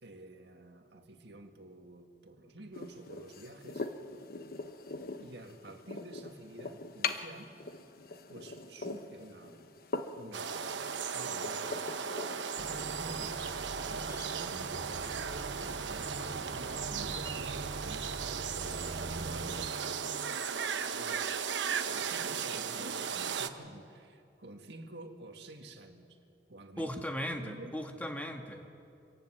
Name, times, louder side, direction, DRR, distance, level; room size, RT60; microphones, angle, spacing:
voice 1, 0.0-3.9 4.9-7.5 8.3-9.7 10.1-12.1 12.6-13.5 13.8-26.2 26.5-26.9 27.3-28.1, right 1 dB, 65° right, 4 dB, 1.9 m, -50 dB
sound 1, 2.7-14.6, left 4 dB, 55° left, 1.0 m, -43 dB
sound 2, 10.3-23.5, right 6 dB, 90° right, 1.0 m, -36 dB
sound 3, 12.6-19.7, right 2 dB, 30° right, 0.5 m, -44 dB
voice 2, 26.8-28.7, equal, 10° left, 4 dB, 1.6 m, -37 dB
26.0 x 18.0 x 7.7 m, 2.6 s
head